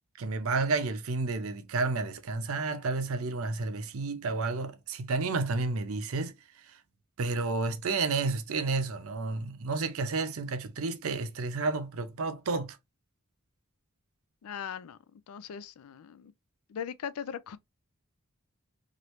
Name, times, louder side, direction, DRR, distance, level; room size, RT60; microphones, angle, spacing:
voice 1, 0.2-6.3 6.7-6.8 7.2-12.8, right 3 dB, 70° right, 0.6 m, -31 dB
voice 2, 14.4-16.3 16.7-17.6, left 8 dB, 85° left, 0.4 m, -40 dB
3.0 x 2.5 x 3.0 m
head